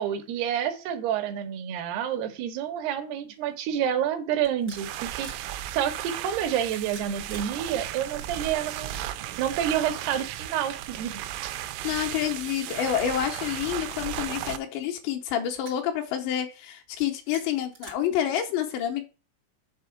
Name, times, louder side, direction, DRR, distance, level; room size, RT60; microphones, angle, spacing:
voice 1, 0.0-8.9 9.4-11.5, right 9 dB, 75° right, 2.6 m, -29 dB
sound 1, 3.3-3.5 4.4-5.5 6.5-7.5 7.8-7.9 8.7-9.3 10.1-10.2 11.1-11.3 12.0-12.2 12.9-13.1 13.4-13.5 14.4-15.0 15.6-15.8 16.9-17.9, right 4 dB, 55° right, 1.1 m, -48 dB
sound 2, 4.7-14.6, right 13 dB, 90° right, 3.1 m, -35 dB
voice 2, 11.8-19.0, left 10 dB, 80° left, 2.7 m, -28 dB
7.0 x 4.0 x 5.8 m
omnidirectional pair, 5.5 m